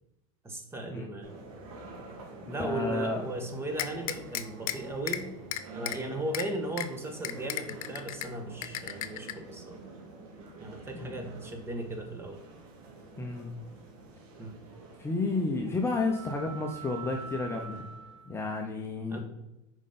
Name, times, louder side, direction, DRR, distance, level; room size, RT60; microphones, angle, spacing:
voice 1, 0.4-1.4 2.5-5.3 5.7-9.8 10.6-12.4 14.4-14.6 19.1-19.2, right 1 dB, 15° right, 4 dB, 1.4 m, -37 dB
sound 1, 1.2-18.4, right 4 dB, 80° right, 2.7 m, -47 dB
voice 2, 2.4-3.2 10.9-11.2 13.2-13.5 15.0-17.8 18.3-19.2, left 3 dB, 15° left, 1 dB, 0.8 m, -31 dB
sound 2, 3.8-4.7 5.1-5.2 5.5-6.0 6.3-6.4 6.8-6.9 7.2-8.3 8.6-9.3, left 12 dB, 90° left, 0.7 m, -33 dB
7.1 x 5.2 x 4.3 m, 0.95 s
supercardioid pair, 130°, 18 cm